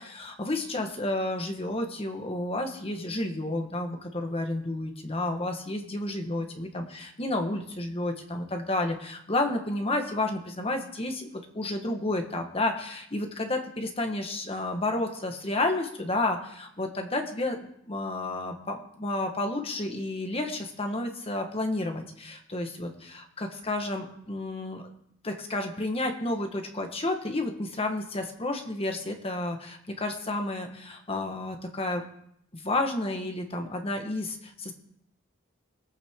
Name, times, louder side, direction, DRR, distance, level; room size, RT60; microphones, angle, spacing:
voice 1, 0.1-11.3 11.5-24.8 25.2-32.0 32.5-34.7, left 2 dB, 30° left, 4 dB, 1.4 m, -31 dB
21.5 x 8.7 x 3.7 m, 0.72 s
head